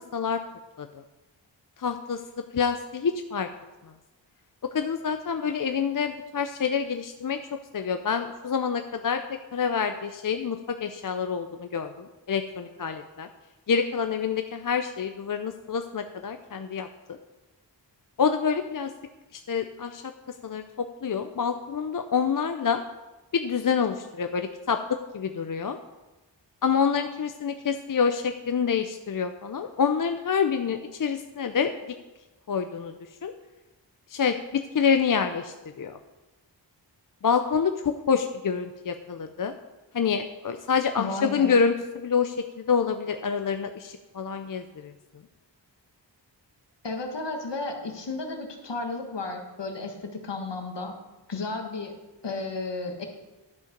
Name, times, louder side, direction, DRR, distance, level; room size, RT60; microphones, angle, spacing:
voice 1, 1.8-2.2 2.5-3.5 3.8-3.9 4.7-7.4 7.7-9.2 9.5-13.3 13.7-17.2 18.2-18.9 19.3-20.0 20.4-22.8 23.3-24.8 25.1-25.8 26.6-31.7 32.5-32.9 33.2-33.3 34.1-36.0 37.2-37.7 38.1-39.5 39.9-44.9, left 6 dB, 50° left, 7 dB, 0.5 m, -27 dB
voice 2, 41.0-41.6 46.8-50.9 51.3-51.9 52.2-53.1, left 3 dB, 70° left, 3 dB, 1.4 m, -33 dB
11.5 x 5.5 x 5.2 m, 1.1 s
wide cardioid pair, 80°, 44 cm